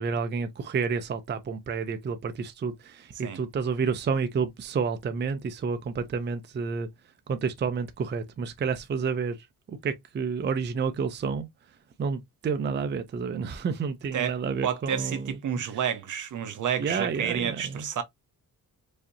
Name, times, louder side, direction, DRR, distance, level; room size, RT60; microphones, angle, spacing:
voice 1, 0.0-6.9 7.3-15.8 16.8-17.9, right 5 dB, 30° right, 0.4 m, -30 dB
voice 2, 14.6-18.0, right 8 dB, 60° right, 0.8 m, -30 dB
4.9 x 2.7 x 2.6 m
wide cardioid pair, 170°, 34 cm